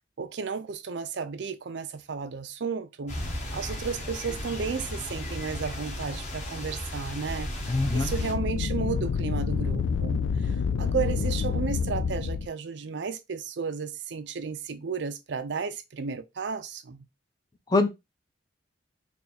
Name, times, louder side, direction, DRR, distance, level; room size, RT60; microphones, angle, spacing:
voice 1, 0.2-3.2 3.5-17.1, right 5 dB, 65° right, 0.5 m, -33 dB
sound 1, 3.1-8.3, left 1 dB, 40° left, 1.0 m, -35 dB
sound 2, 7.6-12.5, left 6 dB, 75° left, 0.3 m, -28 dB
voice 2, 7.7-8.1 17.7-17.9, left 3 dB, 20° left, 0.5 m, -23 dB
3.4 x 2.3 x 4.0 m
head